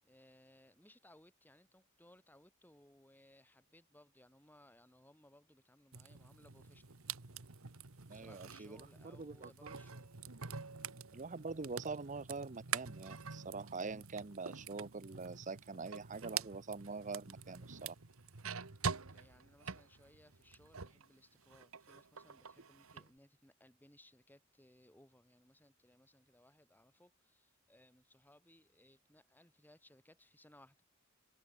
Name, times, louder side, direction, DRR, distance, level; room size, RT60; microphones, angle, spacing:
voice 1, 0.0-7.0 8.1-10.1 19.1-30.8, left 1 dB, 10° left, 7.8 m, -65 dB
sound 1, 5.9-21.1 21.4-23.1, right 6 dB, 90° right, 1.5 m, -46 dB
voice 2, 8.1-8.8 9.0-9.8 11.1-18.0, right 4 dB, 40° right, 0.8 m, -44 dB
head